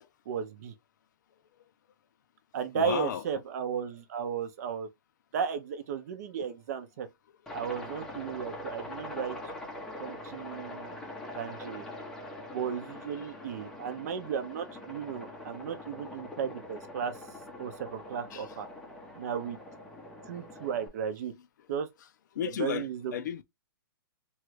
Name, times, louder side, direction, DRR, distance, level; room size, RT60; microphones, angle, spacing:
voice 1, 0.3-0.7 2.5-4.9 5.3-7.1 7.5-9.4 10.0-11.0 11.3-11.9 12.5-17.1 17.6-18.7 19.2-19.6 20.3-21.3 21.7-21.9 22.6-23.1, right 7 dB, 45° right, 0.6 m, -34 dB
voice 2, 2.7-3.2 18.3-18.5 22.3-23.4, left 9 dB, 50° left, 0.4 m, -33 dB
Aircraft, 7.5-20.9, left 1 dB, 5° left, 0.6 m, -43 dB
3.1 x 2.4 x 3.0 m
hypercardioid pair, 155°, 12 cm